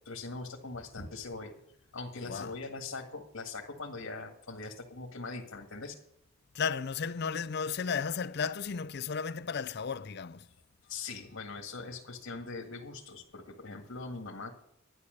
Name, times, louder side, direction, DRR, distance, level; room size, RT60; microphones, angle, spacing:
voice 1, 0.1-1.5 1.9-5.9 10.8-14.5, left 3 dB, 85° left, 1.9 m, -41 dB
voice 2, 6.5-10.5, left 6 dB, 50° left, 0.5 m, -34 dB
11.5 x 9.8 x 6.5 m
head